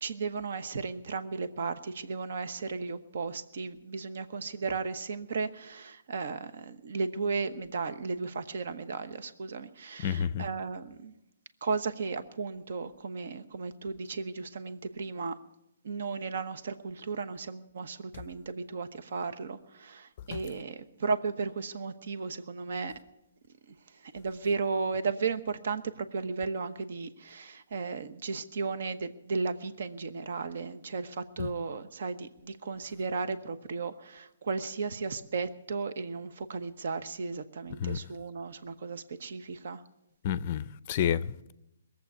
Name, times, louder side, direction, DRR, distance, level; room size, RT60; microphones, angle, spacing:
voice 1, 0.0-11.1 11.6-15.3 15.8-22.9 23.9-39.8, right 4 dB, 60° right, 1.0 m, -35 dB
voice 2, 10.0-10.5 20.3-20.4 31.4-31.5 37.8-38.0 40.2-41.5, left 9 dB, 35° left, 0.5 m, -30 dB
21.0 x 7.8 x 8.2 m
hypercardioid pair, 165°, 0 cm